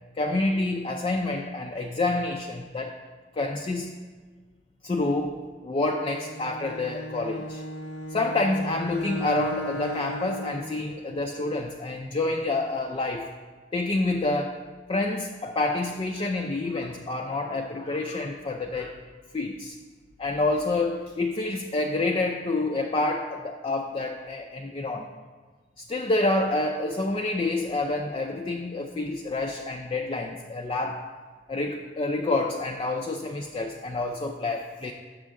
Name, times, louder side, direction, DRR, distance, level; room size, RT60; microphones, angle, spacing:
voice 1, 0.2-2.9 3.4-4.0 4.8-7.6 8.1-13.3 13.7-14.6 14.9-19.0 19.3-19.8 20.2-25.1 25.8-31.1 31.5-34.9, left 2 dB, 30° left, 3 dB, 0.3 m, -28 dB
Bowed string instrument, 6.0-10.8, equal, 85° left, 0.7 m, -36 dB
6.8 x 6.2 x 3.6 m, 1.5 s
head